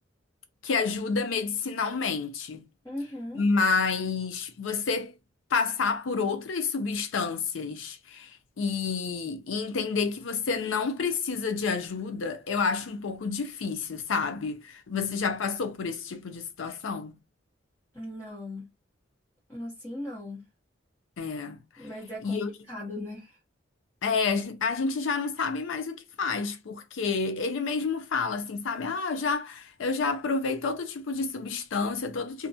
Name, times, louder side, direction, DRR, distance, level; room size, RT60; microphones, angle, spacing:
voice 1, 0.6-2.6 3.3-5.1 5.5-17.2 21.2-21.9 22.2-22.5 24.0-32.5, left 4 dB, 85° left, 0.5 m, -29 dB
voice 2, 2.8-3.4 14.9-15.1 17.9-18.7 19.5-20.4 21.8-23.4, left 1 dB, 15° left, 0.8 m, -38 dB
2.5 x 2.1 x 2.6 m
head